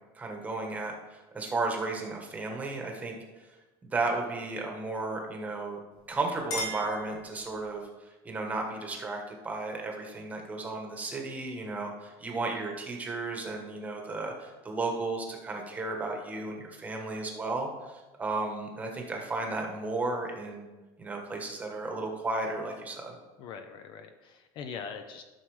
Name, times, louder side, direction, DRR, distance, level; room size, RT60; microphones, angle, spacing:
voice 1, 0.1-3.1 3.8-5.8 6.1-20.7 21.0-23.1, right 3 dB, 15° right, 1 dB, 1.2 m, -34 dB
Chink clink, 5.9-7.8, equal, 80° left, 2.5 m, -39 dB
voice 2, 23.4-25.2, left 6 dB, 45° left, 8 dB, 0.6 m, -42 dB
12.5 x 6.1 x 3.2 m, 1.2 s
cardioid pair, 170°, 12 cm